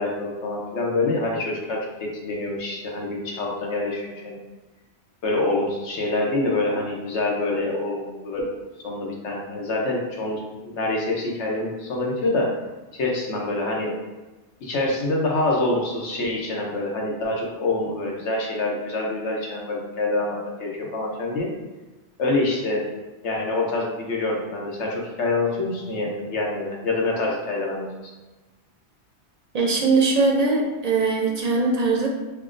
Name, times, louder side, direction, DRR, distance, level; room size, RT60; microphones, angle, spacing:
voice 1, 0.0-4.4 5.2-8.5 8.8-12.5 12.9-13.9 14.6-21.5 22.2-22.8 23.2-28.1, left 2 dB, 85° left, -1 dB, 1.1 m, -26 dB
voice 2, 29.5-32.1, right 3 dB, 50° right, -1 dB, 0.5 m, -21 dB
5.6 x 2.2 x 2.5 m, 1.2 s
omnidirectional pair, 1.2 m